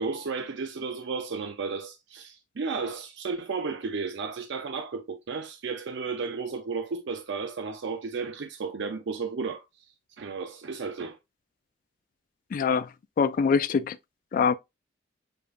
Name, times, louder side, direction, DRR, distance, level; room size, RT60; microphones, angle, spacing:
voice 1, 0.0-9.6 10.2-11.2, right 4 dB, 65° right, 0.5 m, -33 dB
voice 2, 12.5-12.9 13.2-14.0 14.3-14.5, left 6 dB, 45° left, 0.3 m, -23 dB
6.7 x 2.5 x 2.4 m
head